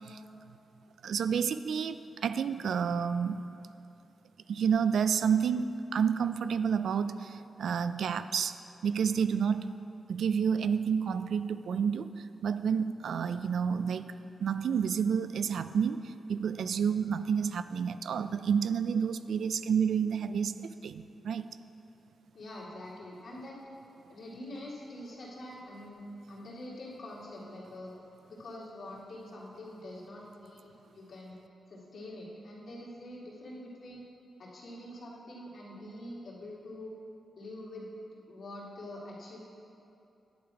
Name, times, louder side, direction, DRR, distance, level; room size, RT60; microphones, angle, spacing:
voice 1, 1.0-3.4 4.5-8.5 8.8-9.7 10.1-12.1 12.4-14.1 14.4-20.5 20.8-21.5, right 7 dB, 75° right, 12 dB, 0.3 m, -29 dB
voice 2, 22.3-23.6 24.1-26.0 26.3-27.9 28.3-31.3 31.7-34.0 34.4-36.9 37.4-37.9 38.2-39.4, left 1 dB, 60° left, -5 dB, 2.4 m, -45 dB
10.5 x 8.9 x 4.8 m, 2.8 s
wide cardioid pair, 155°, 0 cm